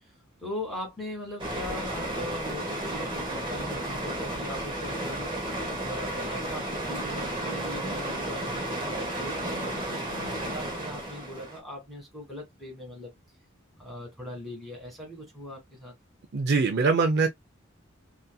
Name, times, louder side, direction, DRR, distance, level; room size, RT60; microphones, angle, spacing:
voice 1, 0.4-5.3 5.8-13.1 13.8-15.9, left 1 dB, ahead, 1.5 m, -40 dB
sound 1, 1.4-11.6, right 1 dB, 25° right, 0.9 m, -33 dB
voice 2, 16.3-17.3, right 4 dB, 55° right, 0.4 m, -22 dB
2.7 x 2.6 x 2.2 m
head